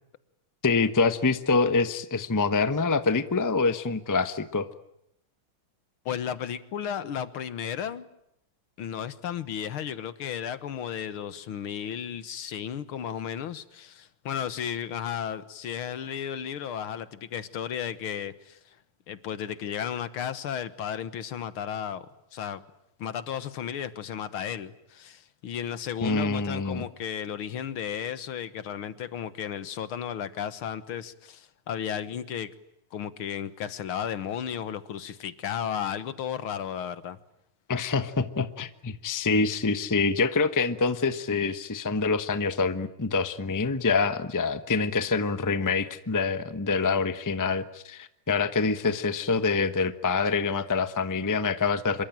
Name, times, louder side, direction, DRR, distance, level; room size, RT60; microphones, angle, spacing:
voice 1, 0.6-4.7 26.0-26.8 37.7-52.0, left 4 dB, 15° left, 11 dB, 0.7 m, -26 dB
voice 2, 6.1-8.1 8.8-18.8 19.1-22.1 22.3-22.6 23.0-32.5 32.9-37.2, left 9 dB, 80° left, 13 dB, 2.1 m, -34 dB
26.5 x 23.0 x 9.0 m, 0.80 s
omnidirectional pair, 2.3 m